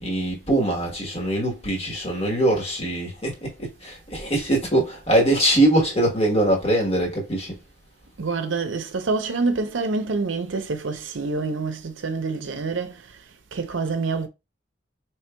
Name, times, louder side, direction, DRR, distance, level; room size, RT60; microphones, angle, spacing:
voice 1, 0.0-7.6, right 1 dB, 30° left, 1.2 m, -22 dB
voice 2, 8.2-13.2 13.5-14.3, right 3 dB, 90° right, 0.6 m, -27 dB
4.4 x 3.2 x 2.2 m
head